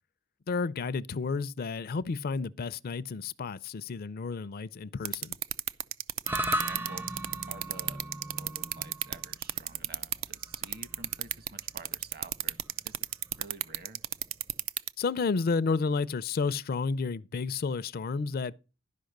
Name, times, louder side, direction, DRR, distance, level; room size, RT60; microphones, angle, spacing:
voice 1, 0.5-5.4 15.0-18.6, left 4 dB, 50° left, 0.4 m, -31 dB
sound 1, 5.0-14.9, right 13 dB, 75° right, 0.5 m, -31 dB
sound 2, 6.3-14.7, right 1 dB, 10° right, 0.5 m, -38 dB
voice 2, 6.4-7.1 7.5-8.1 8.3-13.0 13.3-14.0, right 3 dB, 50° right, 1.2 m, -50 dB
11.5 x 5.4 x 6.5 m
head